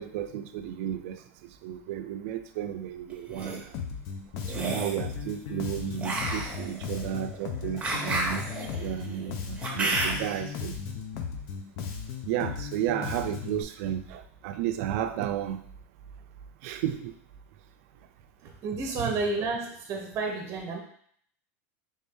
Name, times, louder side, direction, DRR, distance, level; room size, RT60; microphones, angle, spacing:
voice 1, 0.0-3.8 4.5-8.4 8.7-10.8 12.3-15.6 16.6-17.1 19.0-19.1, right 10 dB, 65° right, 9 dB, 0.4 m, -33 dB
sound 1, 3.1-3.6 4.5-5.0 6.0-10.4, right 2 dB, 15° right, 1.0 m, -32 dB
Bass guitar, 3.7-13.6, left 6 dB, 55° left, 0.6 m, -36 dB
voice 2, 18.4-20.8, right 3 dB, 35° right, 2 dB, 0.7 m, -31 dB
3.5 x 2.6 x 3.5 m, 0.62 s
supercardioid pair, 115°, 8 cm